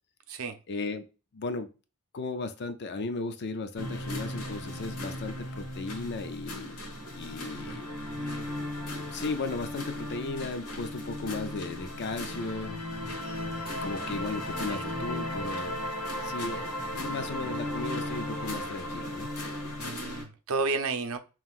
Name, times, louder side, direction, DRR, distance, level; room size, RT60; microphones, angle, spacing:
voice 1, 0.7-1.1 1.3-1.7 2.1-6.8 7.1-7.9 9.1-12.8 13.8-15.8 16.2-19.3, left 3 dB, 50° left, 0.4 m, -36 dB
sound 1, 3.8-20.2, left 1 dB, 90° left, 1.2 m, -36 dB
voice 2, 8.1-8.5 14.5-14.9 19.8-21.2, right 4 dB, 65° right, 0.6 m, -33 dB
5.5 x 3.1 x 2.4 m
head